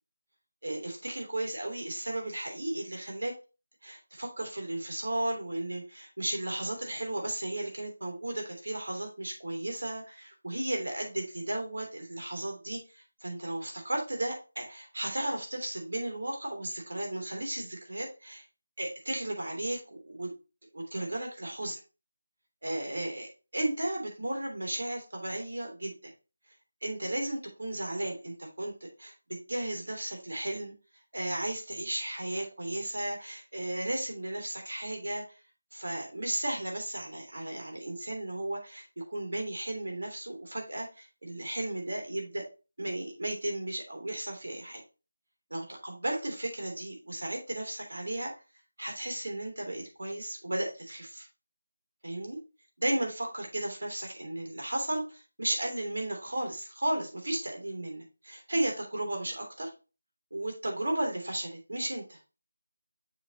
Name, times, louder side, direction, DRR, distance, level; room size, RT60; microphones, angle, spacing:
voice 1, 0.6-3.3 3.8-18.4 18.8-20.3 20.7-21.8 22.6-26.1 26.8-30.7 31.1-35.4 35.7-42.4 42.8-44.8 45.5-48.3 48.8-51.3 52.0-52.4 52.8-59.7 60.3-62.2, right 1 dB, 65° right, 2 dB, 2.9 m, -34 dB
7.1 x 5.9 x 2.8 m, 0.32 s
figure-of-eight pair, 165°, 0 cm